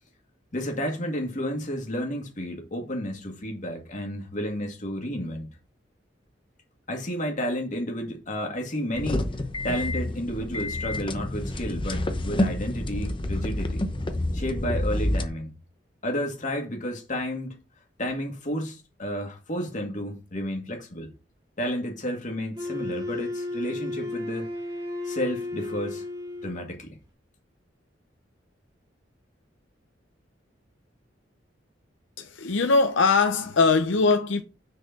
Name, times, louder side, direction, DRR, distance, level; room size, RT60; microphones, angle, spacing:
voice 1, 0.5-5.5 6.9-9.3 9.6-13.9 14.3-15.5 16.0-17.6 18.0-21.1 21.6-24.5 25.0-26.0 26.4-27.0, equal, 45° left, 2.1 m, -31 dB
sound 1, 8.9-15.3, left 1 dB, 25° left, 0.8 m, -28 dB
Wind instrument woodwind instrument, 22.6-26.7, left 2 dB, 25° right, 2.2 m, -33 dB
voice 2, 32.2-34.4, left 4 dB, 85° left, 0.7 m, -21 dB
6.5 x 4.5 x 5.8 m
head